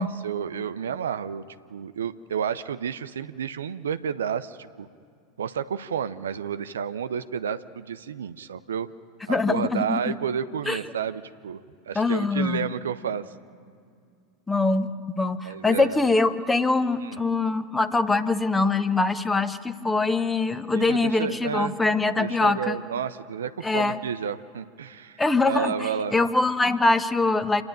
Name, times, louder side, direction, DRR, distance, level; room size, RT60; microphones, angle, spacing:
voice 1, 0.0-1.4 1.7-4.9 5.4-8.9 9.3-13.3 15.4-16.0 17.0-17.2 20.7-21.7 22.2-26.2, right 8 dB, 75° right, 12 dB, 0.6 m, -31 dB
voice 2, 9.3-10.2 10.7-10.8 11.9-12.7 14.5-22.8 23.6-24.0 25.2-27.6, left 3 dB, 10° left, 12 dB, 1.0 m, -23 dB
27.5 x 10.5 x 9.0 m, 2.4 s
figure-of-eight pair, 85°, 0 cm